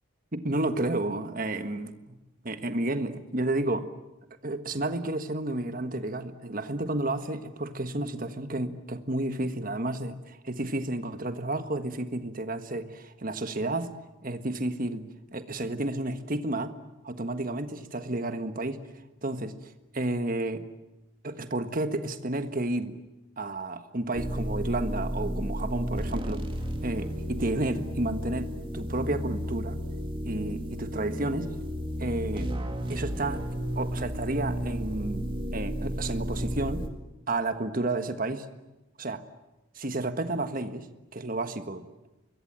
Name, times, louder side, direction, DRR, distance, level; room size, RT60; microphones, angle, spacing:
voice 1, 0.3-2.1 2.4-3.8 4.4-13.9 14.2-15.0 15.3-16.7 17.0-18.8 19.2-19.5 19.9-20.7 21.2-22.9 23.4-26.4 26.8-29.8 30.2-31.5 32.0-32.5 32.9-33.4 33.7-36.9 37.3-38.5 39.0-39.2 39.7-40.9 41.1-41.8, right 2 dB, 40° right, 9 dB, 1.5 m, -31 dB
sound 1, 24.1-36.9, equal, 25° right, 2.1 m, -33 dB
25.5 x 22.5 x 8.9 m, 1.0 s
head